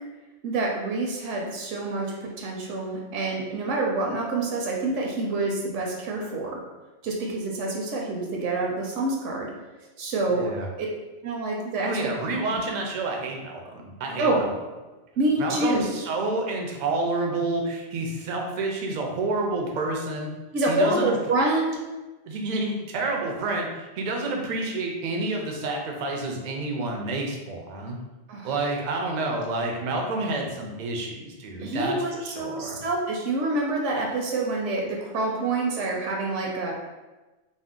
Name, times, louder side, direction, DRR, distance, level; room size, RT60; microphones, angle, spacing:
voice 1, 0.4-6.6 7.0-9.5 10.0-10.9 11.2-11.9 12.5-12.6 14.2-14.4 15.2-15.9 20.5-21.8 28.3-28.5 31.6-36.7, right 2 dB, 80° right, -1 dB, 0.9 m, -27 dB
voice 2, 10.3-10.7 11.8-14.5 15.4-20.3 20.7-21.2 22.3-28.0 28.4-32.8, right 2 dB, 60° right, 1 dB, 0.4 m, -29 dB
2.6 x 2.0 x 3.6 m, 1.1 s
omnidirectional pair, 1.2 m